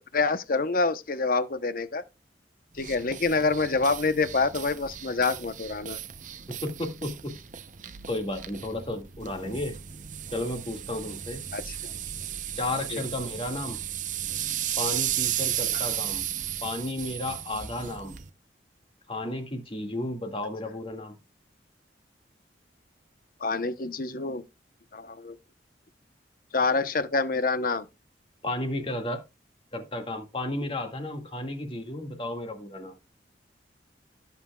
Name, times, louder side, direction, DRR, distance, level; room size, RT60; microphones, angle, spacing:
voice 1, 0.0-2.0 2.8-6.0 11.5-11.8 12.9-13.0 15.7-15.8 23.4-24.4 24.9-25.4 26.5-27.9, left 3 dB, 50° left, 0.9 m, -27 dB
sound 1, 2.8-18.3, right 11 dB, 45° right, 0.7 m, -35 dB
voice 2, 6.5-7.3 8.1-9.8 10.3-11.4 12.6-13.8 14.8-16.2 16.6-18.2 19.1-21.1 28.4-29.2 29.7-32.9, left 1 dB, 30° left, 2.1 m, -33 dB
17.0 x 7.2 x 2.4 m
head